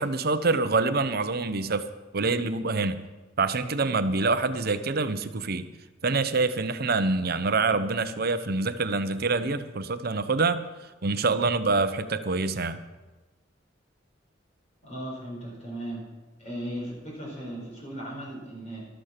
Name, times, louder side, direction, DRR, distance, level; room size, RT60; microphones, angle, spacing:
voice 1, 0.0-1.9 2.1-3.1 3.4-5.7 6.0-10.6 11.0-12.8, right 3 dB, 55° right, 11 dB, 0.8 m, -26 dB
voice 2, 14.8-16.0 16.4-18.8, right 1 dB, 40° left, -3 dB, 4.6 m, -37 dB
13.0 x 12.5 x 5.8 m, 1.2 s
head